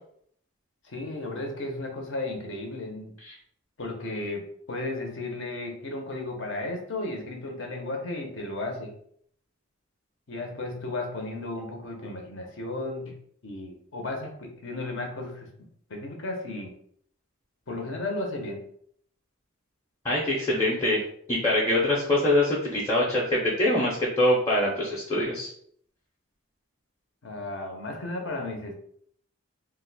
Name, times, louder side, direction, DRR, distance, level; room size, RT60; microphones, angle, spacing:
voice 1, 0.9-3.2 3.8-8.9 10.3-13.2 13.4-15.5 15.9-16.7 17.7-18.6 27.2-28.7, left 2 dB, 65° left, 2 dB, 0.6 m, -34 dB
voice 2, 20.0-21.0 21.3-25.5, left 1 dB, 15° left, -6 dB, 0.5 m, -24 dB
2.5 x 2.1 x 3.9 m, 0.64 s
head